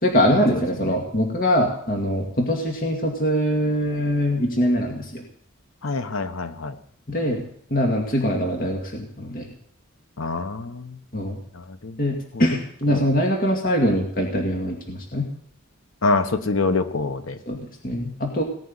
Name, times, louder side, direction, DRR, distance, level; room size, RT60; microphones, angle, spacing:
voice 1, 0.0-5.2 7.1-7.4 7.7-9.5 11.1-11.4 12.0-15.3 17.5-18.4, equal, 45° left, 1 dB, 2.2 m, -23 dB
voice 2, 5.8-6.8 10.2-11.0 11.5-12.0 12.3-12.4 12.9-13.1 16.0-17.4, left 3 dB, 90° left, 10 dB, 1.2 m, -26 dB
18.5 x 6.3 x 9.8 m, 0.64 s
head